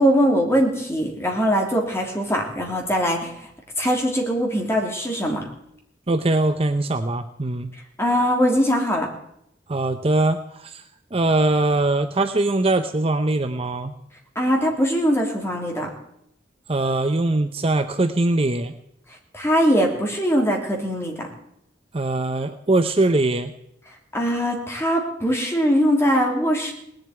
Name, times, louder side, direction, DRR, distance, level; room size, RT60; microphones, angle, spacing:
voice 1, 0.0-3.3 3.8-5.5 8.0-9.1 14.3-15.9 19.3-21.3 24.1-26.7, equal, 15° left, 1 dB, 3.1 m, -21 dB
voice 2, 6.1-7.7 9.7-10.8 11.1-13.9 16.7-18.7 21.9-23.5, right 2 dB, 30° right, 8 dB, 0.7 m, -21 dB
19.0 x 7.8 x 9.4 m, 0.76 s
head